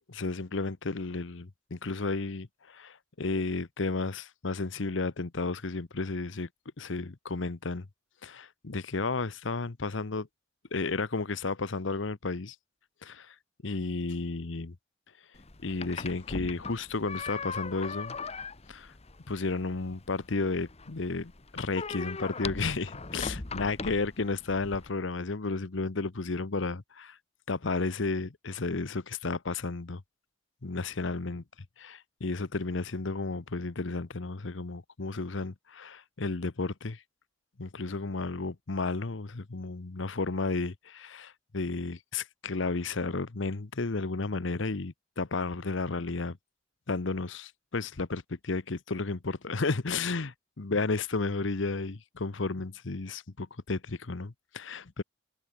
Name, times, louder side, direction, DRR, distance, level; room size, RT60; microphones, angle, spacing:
voice 1, 0.1-6.5 6.8-7.9 8.2-10.3 10.7-12.6 13.0-13.3 13.6-14.7 15.6-18.2 18.7-18.9 19.3-27.2 27.5-30.0 30.6-31.4 31.9-37.0 37.6-46.4 46.9-55.0, left 3 dB, 65° left, 0.9 m, -33 dB
sound 1, 15.4-24.9, left 4 dB, 30° left, 1.2 m, -40 dB
head